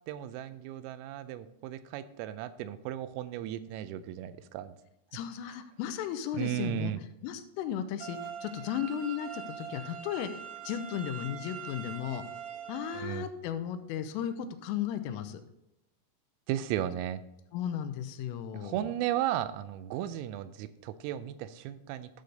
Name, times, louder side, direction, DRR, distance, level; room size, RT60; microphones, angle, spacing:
voice 1, 0.1-4.7 6.3-7.0 12.9-13.3 16.5-17.2 18.6-22.1, right 12 dB, 85° right, 12 dB, 3.1 m, -35 dB
voice 2, 5.1-6.9 7.2-12.2 12.7-15.4 17.5-18.9, left 9 dB, 85° left, 8 dB, 3.2 m, -35 dB
sound 1, 8.0-13.0, right 8 dB, 70° right, 2.8 m, -43 dB
13.0 x 6.6 x 4.0 m, 0.84 s
omnidirectional pair, 6.0 m